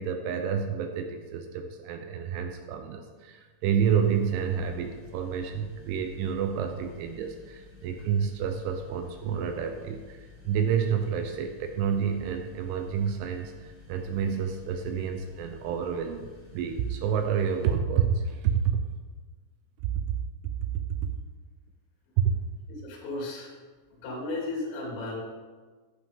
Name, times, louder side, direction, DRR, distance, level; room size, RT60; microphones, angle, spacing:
voice 1, 0.0-18.8 22.2-22.4, right 7 dB, 80° right, 6 dB, 3.0 m, -29 dB
sound 1, 3.6-17.8, left 4 dB, 25° left, 3.1 m, -52 dB
voice 2, 22.8-23.5 24.0-25.2, left 2 dB, 75° left, -3 dB, 5.5 m, -34 dB
12.5 x 11.5 x 3.6 m, 1.4 s
omnidirectional pair, 6.0 m